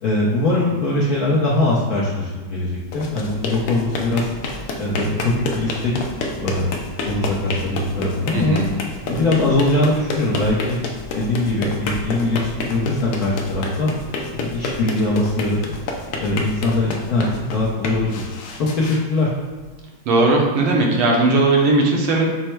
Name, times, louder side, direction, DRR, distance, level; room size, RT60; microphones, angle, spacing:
voice 1, 0.0-4.3 4.8-5.9 6.3-6.8 7.0-8.6 9.1-10.8 11.1-13.9 14.3-15.6 16.2-18.2 18.6-19.3, left 2 dB, 65° left, -6 dB, 1.0 m, -21 dB
sound 1, 2.8-19.8, left 2 dB, 85° left, 0.8 m, -29 dB
voice 2, 8.3-8.7 20.0-22.3, right 2 dB, 80° right, -1 dB, 1.6 m, -17 dB
5.4 x 2.1 x 4.4 m, 1.3 s
omnidirectional pair, 2.3 m